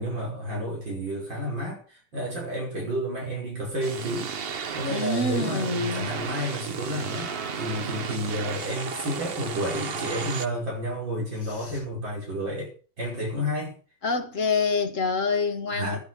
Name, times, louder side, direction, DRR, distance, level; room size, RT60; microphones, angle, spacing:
voice 1, 0.0-4.3 4.7-12.7 13.0-13.7 15.7-16.0, equal, 65° right, 6.4 m, -31 dB
sound 1, 3.8-10.5, right 6 dB, 80° right, 0.5 m, -34 dB
voice 2, 4.9-6.1 14.0-16.0, left 4 dB, 40° left, 2.1 m, -26 dB
sound 2, 5.8-9.9, right 5 dB, 35° right, 1.4 m, -44 dB
12.0 x 10.5 x 6.1 m
omnidirectional pair, 2.1 m